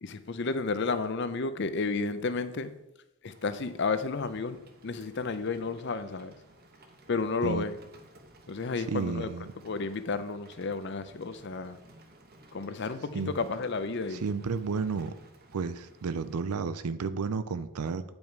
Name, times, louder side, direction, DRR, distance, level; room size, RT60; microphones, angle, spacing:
voice 1, 0.0-2.7 3.2-6.4 7.1-7.7 8.5-9.3 9.6-11.8 12.5-14.2, left 4 dB, 50° left, 0.6 m, -32 dB
Rain, 3.3-16.3, right 1 dB, 45° right, 1.0 m, -56 dB
voice 2, 8.9-9.5 13.1-13.3 14.1-15.2 15.5-18.0, right 5 dB, 85° right, 0.5 m, -32 dB
9.1 x 5.3 x 4.7 m
head